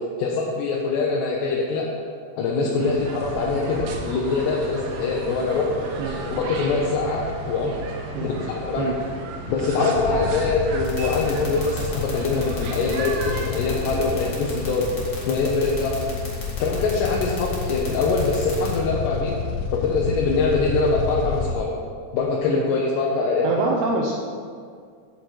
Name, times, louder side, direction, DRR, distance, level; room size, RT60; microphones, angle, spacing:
voice 1, 0.2-1.9 2.4-5.7 6.0-7.8 8.2-8.9 9.5-14.9 15.3-16.1 16.6-19.4 19.7-21.7 22.1-23.5, left 4 dB, 75° left, -3 dB, 2.8 m, -23 dB
sound 1, 2.8-15.0, right 3 dB, 70° right, 2.8 m, -34 dB
voice 2, 9.8-10.3 22.5-22.7 23.4-24.1, right 3 dB, 90° right, -2 dB, 2.2 m, -26 dB
sound 2, 9.9-21.6, left 5 dB, 90° left, 3.3 m, -30 dB
sound 3, 10.8-18.7, left 5 dB, 45° left, 2.3 m, -38 dB
16.5 x 6.0 x 4.7 m, 2.1 s
omnidirectional pair, 5.7 m